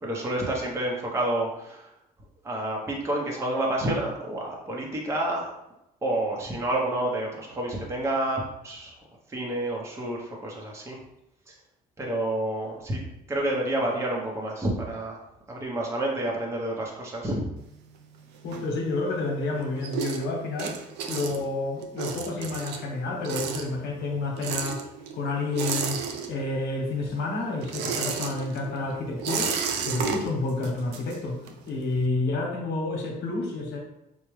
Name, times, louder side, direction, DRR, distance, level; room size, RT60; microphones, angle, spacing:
voice 1, 0.0-1.9 2.4-5.5 6.0-9.0 9.3-11.0 11.5-11.6 12.0-13.0 13.3-15.2 15.5-17.5, right 1 dB, 15° right, -2 dB, 0.7 m, -29 dB
sound 1, 17.6-19.2 19.5-26.7 27.0-31.7, right 6 dB, 85° right, 0.5 m, -33 dB
voice 2, 18.4-20.8 21.1-24.9 25.1-26.0 26.3-29.5 29.8-33.8, left 2 dB, 80° left, 1 dB, 1.0 m, -29 dB
4.7 x 2.1 x 3.1 m, 0.86 s
cardioid pair, 110°, 17 cm